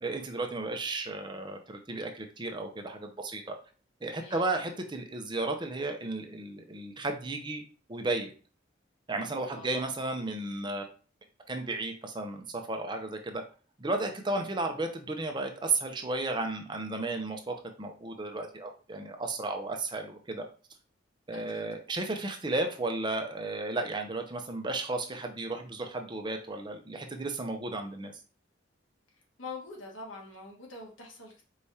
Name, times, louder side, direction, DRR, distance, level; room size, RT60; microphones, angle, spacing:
voice 1, 0.0-3.6 4.0-7.6 7.9-8.3 9.1-10.9 11.5-13.4 13.8-20.5 21.3-28.1, right 2 dB, 25° right, 5 dB, 0.6 m, -34 dB
voice 2, 9.5-9.8 21.3-21.6 29.4-31.4, left 3 dB, 80° left, -1 dB, 1.5 m, -44 dB
4.6 x 3.4 x 2.8 m, 0.37 s
head